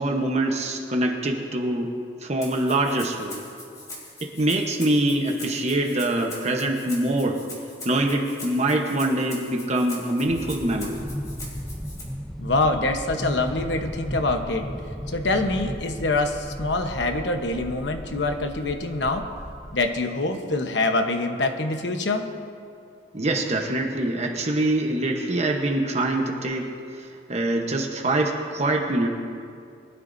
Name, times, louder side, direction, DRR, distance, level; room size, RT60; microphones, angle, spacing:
voice 1, 0.0-1.9 2.2-3.5 4.2-7.4 7.8-11.0 23.1-29.1, right 1 dB, 35° right, 2 dB, 1.0 m, -24 dB
Rattle (instrument), 2.4-12.0, left 2 dB, 20° left, 3.2 m, -42 dB
sound 1, 10.2-19.9, equal, ahead, 0.6 m, -35 dB
voice 2, 12.4-14.7 15.1-19.3 19.7-22.2, left 2 dB, 65° left, 5 dB, 1.1 m, -25 dB
22.5 x 12.5 x 2.7 m, 2.4 s
head